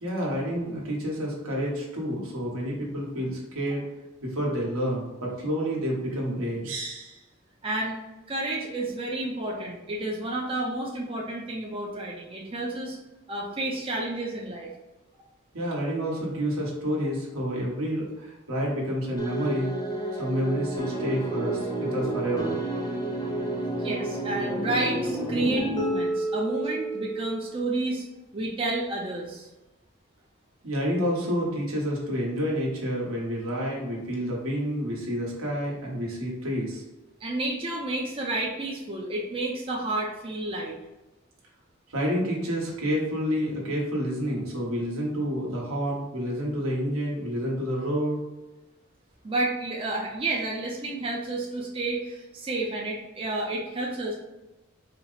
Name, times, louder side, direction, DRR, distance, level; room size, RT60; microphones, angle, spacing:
voice 1, 0.0-3.8 4.2-7.2 15.5-19.7 20.1-22.5 30.6-36.8 41.9-48.2, equal, 80° right, -3 dB, 1.2 m, -29 dB
voice 2, 7.6-8.0 8.3-13.0 13.3-14.7 23.8-28.0 28.3-29.5 37.2-40.7 49.2-54.1, right 2 dB, 25° right, -2 dB, 0.5 m, -30 dB
sound 1, 19.2-27.6, right 2 dB, 20° left, 0.7 m, -30 dB
4.3 x 2.0 x 3.9 m, 1.0 s
head